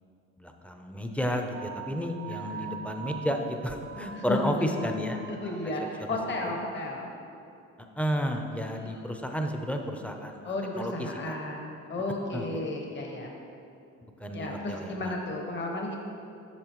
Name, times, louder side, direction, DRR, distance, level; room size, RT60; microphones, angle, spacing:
voice 1, 0.4-5.6 6.0-6.2 8.0-10.9 11.2-11.3 12.3-12.5 14.2-15.1, equal, 5° left, 4 dB, 0.6 m, -32 dB
sound 1, 1.5-6.1, right 9 dB, 50° right, 0.4 m, -43 dB
voice 2, 2.3-2.9 4.1-4.6 5.3-7.1 8.8-9.0 10.4-13.3 14.3-16.0, left 1 dB, 40° left, 1 dB, 1.1 m, -34 dB
8.7 x 6.2 x 3.1 m, 2.6 s
cardioid pair, 90°, 30 cm